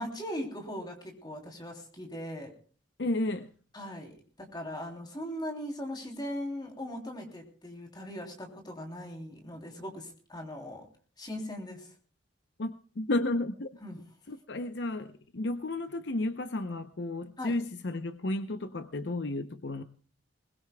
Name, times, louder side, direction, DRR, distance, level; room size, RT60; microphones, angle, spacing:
voice 1, 0.0-2.5 3.7-10.9 11.2-11.9 13.8-14.0 17.4-17.5, equal, 25° left, 3.2 m, -39 dB
voice 2, 3.0-3.5 12.6-13.8 14.3-19.8, left 2 dB, 65° left, 0.7 m, -32 dB
21.5 x 20.0 x 2.3 m
head